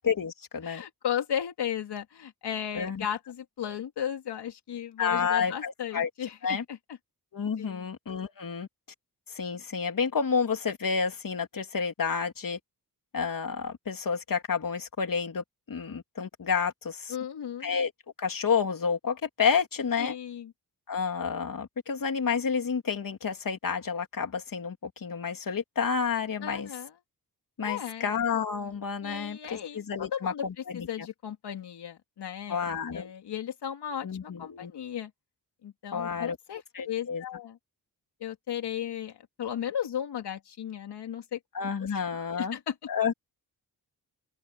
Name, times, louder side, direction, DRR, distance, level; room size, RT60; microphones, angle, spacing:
voice 1, 0.0-0.8 2.7-3.0 5.0-6.1 6.4-6.6 7.3-8.7 9.3-12.6 13.1-17.2 17.6-17.9 18.2-20.2 20.9-26.7 27.6-30.9 32.5-33.1 34.0-34.7 35.9-36.4 36.7-37.2 41.5-42.5 42.9-43.1, left 6 dB, 55° left, 3.3 m, -30 dB
voice 2, 0.6-6.8 7.6-7.9 17.1-17.7 20.0-20.5 26.4-26.9 27.6-28.2 29.0-32.7 32.9-35.1 35.6-37.6 38.2-41.4 41.8-42.0 42.4-42.7, left 9 dB, 85° left, 3.0 m, -35 dB
open air
cardioid pair, 80°, 39 cm